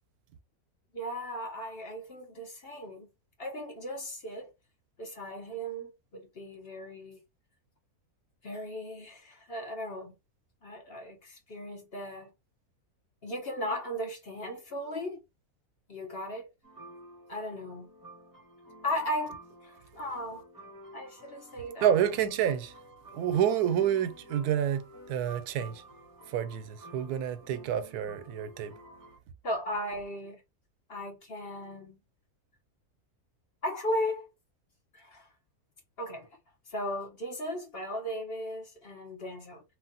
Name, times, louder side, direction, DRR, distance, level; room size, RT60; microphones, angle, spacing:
voice 1, 0.9-3.1 3.4-4.5 5.0-7.2 8.4-10.1 10.6-12.3 13.2-15.2 15.9-16.4 17.3-17.9 18.8-20.4 20.9-21.9 29.4-30.4 30.9-32.0 33.6-34.3 34.9-35.3 36.0-36.3 36.7-39.6, equal, 45° left, 1.0 m, -36 dB
sound 1, 16.6-29.2, right 1 dB, 15° right, 0.8 m, -51 dB
voice 2, 21.8-22.7 23.1-25.8 26.3-28.8, right 9 dB, 90° right, 1.1 m, -28 dB
3.0 x 2.4 x 2.7 m
omnidirectional pair, 1.6 m